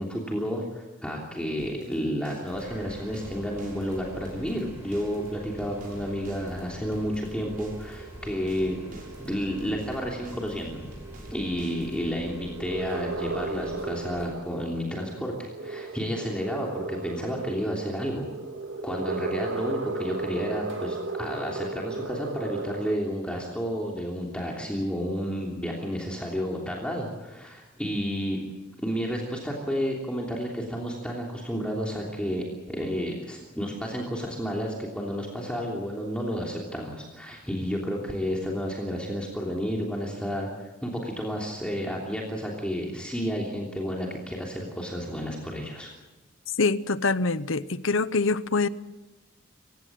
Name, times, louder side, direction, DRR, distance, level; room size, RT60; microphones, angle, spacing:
voice 1, 0.0-10.9 11.3-18.3 18.8-28.4 28.8-45.9, equal, 5° left, 3.1 m, -31 dB
sound 1, 1.6-12.3, right 1 dB, 45° right, 6.8 m, -49 dB
sound 2, 2.5-14.4, equal, 10° right, 7.1 m, -45 dB
sound 3, 5.6-23.0, right 3 dB, 75° right, 2.0 m, -36 dB
voice 2, 46.6-48.7, left 3 dB, 75° left, 0.9 m, -25 dB
26.5 x 16.5 x 7.6 m
head